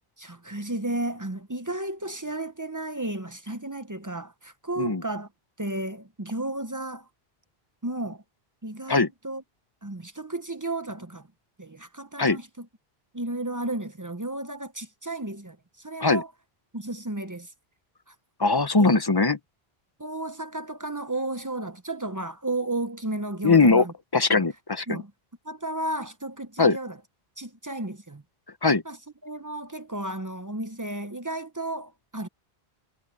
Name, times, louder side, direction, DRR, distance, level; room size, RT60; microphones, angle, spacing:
voice 1, 0.2-5.3 5.6-7.1 7.8-8.2 8.6-9.4 9.8-11.3 11.6-12.7 13.1-16.3 16.7-17.5 18.1-18.2 18.8-18.9 20.0-23.9 24.3-24.4 24.9-25.1 25.4-27.0 27.4-28.2 28.9-29.0 29.2-32.3, right 2 dB, 20° right, 0.7 m, -33 dB
voice 2, 18.4-19.4 23.4-23.9 24.1-25.0 26.6-26.8 28.6-28.8, left 3 dB, 25° left, 0.7 m, -20 dB
omnidirectional pair, 1.0 m